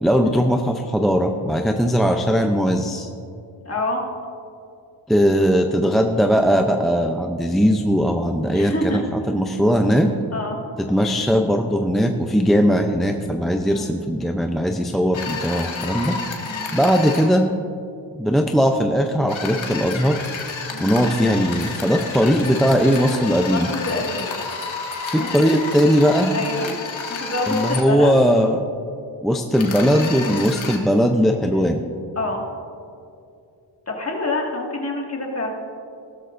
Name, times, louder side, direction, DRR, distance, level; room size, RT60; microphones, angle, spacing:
voice 1, 0.0-3.1 5.1-10.1 10.9-16.2 16.7-17.5 18.2-20.2 20.8-23.7 25.1-26.3 27.5-28.6 29.2-31.8, equal, ahead, 3 dB, 0.5 m, -19 dB
voice 2, 1.6-1.9 3.6-4.0 8.5-9.0 10.3-10.6 13.6-13.9 16.4-16.7 20.7-21.0 23.5-24.4 25.1-25.5 26.3-26.7 27.2-28.2 31.5-31.7 32.2-32.4 33.9-35.5, left 2 dB, 30° left, 0 dB, 2.0 m, -27 dB
sound 1, 15.1-17.3 19.3-27.8 29.5-30.8, left 5 dB, 80° left, 1.9 m, -31 dB
16.5 x 13.5 x 2.6 m, 2.5 s
wide cardioid pair, 115°, 46 cm